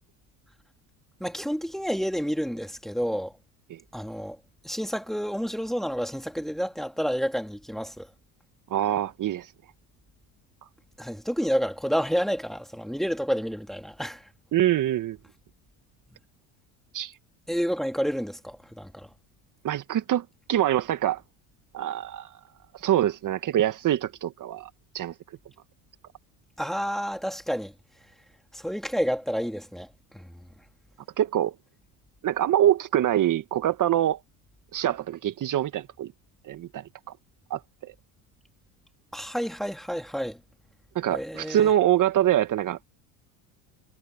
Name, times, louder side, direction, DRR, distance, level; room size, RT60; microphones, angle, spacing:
voice 1, 1.2-3.3 3.9-4.4 4.6-8.1 11.0-14.3 17.5-19.1 26.6-27.7 28.5-30.3 39.1-40.4 41.1-41.7, equal, ahead, 3.1 m, -29 dB
voice 2, 8.7-9.5 14.5-15.2 16.9-17.2 19.6-21.2 21.7-22.3 22.7-25.1 31.2-31.6 32.2-34.2 34.7-36.1 36.4-36.8 37.5-37.9 41.0-42.9, right 12 dB, 45° right, 1.9 m, -25 dB
hypercardioid pair, 80°, 43 cm